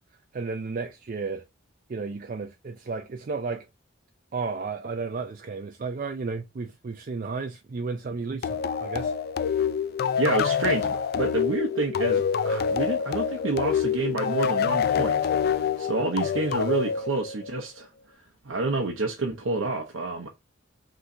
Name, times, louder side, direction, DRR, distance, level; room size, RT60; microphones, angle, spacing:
voice 1, 0.3-1.4 1.9-3.7 4.3-9.1, right 4 dB, 45° right, 0.4 m, -33 dB
sound 1, 8.4-17.7, left 7 dB, 50° left, 0.3 m, -26 dB
voice 2, 10.2-15.2 15.5-17.9 18.4-20.3, right 2 dB, 90° right, 0.8 m, -28 dB
5.5 x 3.1 x 2.6 m
head